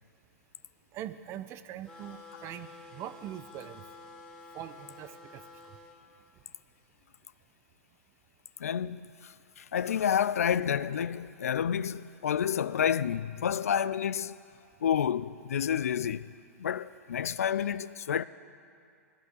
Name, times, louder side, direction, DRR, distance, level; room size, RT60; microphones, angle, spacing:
voice 1, 0.9-3.8 4.5-5.4, right 11 dB, 30° right, 0.7 m, -42 dB
sound 1, 1.8-6.0, left 3 dB, 10° left, 2.1 m, -50 dB
voice 2, 8.6-14.4 14.8-16.3 16.6-18.2, left 8 dB, 70° left, 0.4 m, -29 dB
20.5 x 12.5 x 3.9 m
figure-of-eight pair, 105°, 8 cm